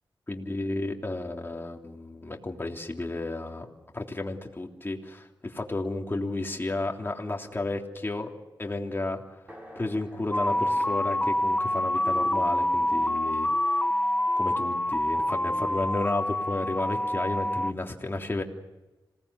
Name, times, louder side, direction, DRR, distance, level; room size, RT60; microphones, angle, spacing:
voice 1, 0.3-3.7 3.9-8.3 8.6-9.4 9.7-13.5 14.4-18.4, left 2 dB, 25° left, 1 dB, 3.4 m, -32 dB
sound 1, 9.5-13.4, equal, 15° right, 6.7 m, -52 dB
sound 2, 10.3-17.7, left 1 dB, 10° left, 0.8 m, -26 dB
27.0 x 18.5 x 8.4 m, 1.1 s
wide cardioid pair, 85°, 8 cm